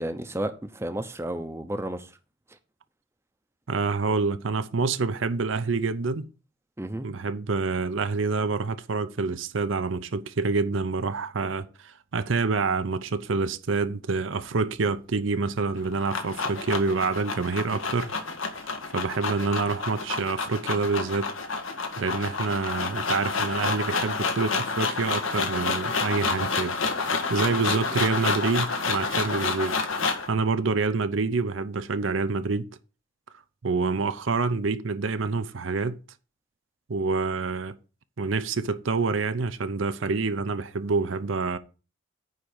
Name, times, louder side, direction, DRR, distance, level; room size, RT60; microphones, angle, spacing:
voice 1, 0.0-2.1 6.8-7.1, right 1 dB, 15° right, 0.7 m, -32 dB
voice 2, 3.7-6.3 7.0-18.1 18.9-21.3 22.0-26.8 27.3-29.8 30.3-32.7 33.6-36.0 36.9-37.7 38.2-41.6, right 4 dB, 70° right, 0.6 m, -27 dB
sound 1, 15.7-30.3, left 4 dB, 80° left, 1.5 m, -29 dB
9.4 x 3.8 x 7.0 m
head